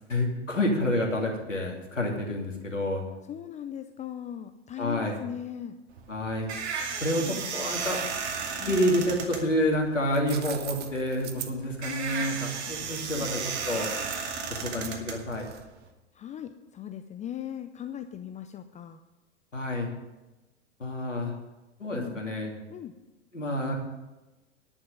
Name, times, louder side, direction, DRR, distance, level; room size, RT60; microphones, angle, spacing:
voice 1, 0.1-3.0 4.8-5.2 6.1-6.5 7.0-8.0 8.6-13.4 13.7-13.9 14.5-15.5 19.5-19.9 20.8-21.3 21.8-22.5 23.3-23.8, left 1 dB, 90° left, 0 dB, 2.8 m, -28 dB
voice 2, 3.3-5.8 7.2-7.4 8.6-8.8 13.1-13.3 16.1-19.0 21.9-22.3 22.7-22.9, left 10 dB, 20° left, 8 dB, 0.5 m, -38 dB
sound 1, 5.9-15.9, right 5 dB, 65° right, 2.3 m, -34 dB
sound 2, 9.9-15.8, right 10 dB, 25° right, 1.1 m, -42 dB
11.0 x 7.2 x 9.2 m, 1.1 s
figure-of-eight pair, 95°, 36 cm